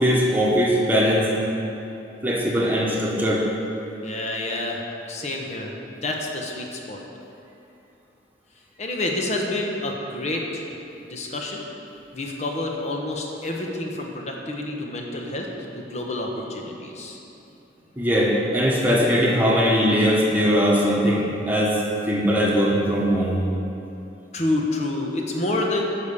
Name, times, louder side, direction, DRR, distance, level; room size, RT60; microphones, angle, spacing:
voice 1, 0.0-1.3 2.2-3.4 18.0-21.8 22.1-23.4, equal, 10° right, -4 dB, 1.4 m, -20 dB
voice 2, 4.0-7.0 8.8-10.7 11.1-11.6 12.1-15.5 15.7-17.2 24.3-25.8, left 2 dB, 40° left, 0 dB, 1.2 m, -28 dB
10.5 x 5.2 x 7.0 m, 2.9 s
head